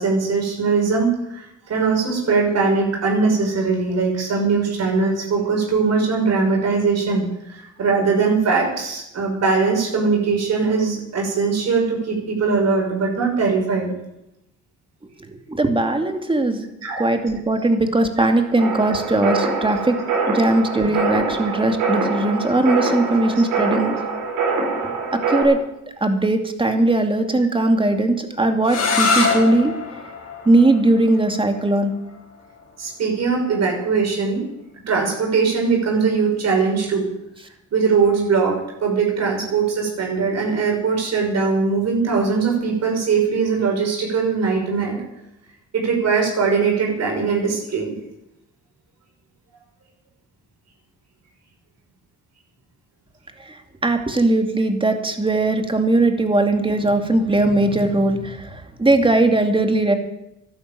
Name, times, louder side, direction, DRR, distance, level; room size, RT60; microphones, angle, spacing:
voice 1, 0.0-13.9 16.8-17.1 18.2-18.3 23.3-23.5 32.8-34.5 34.9-37.1 37.7-45.0 45.7-47.9, right 4 dB, 60° right, 0 dB, 6.3 m, -21 dB
voice 2, 15.5-16.7 17.0-20.0 20.2-24.0 25.3-25.6 26.0-29.7 30.5-31.9 53.8-60.0, right 2 dB, 15° right, 5 dB, 2.6 m, -19 dB
sound 1, 18.6-25.4, right 4 dB, 85° right, 5.6 m, -24 dB
sound 2, 28.6-34.4, left 4 dB, 55° left, 5.1 m, -26 dB
12.5 x 12.0 x 9.0 m, 0.86 s
cardioid pair, 90°, 30 cm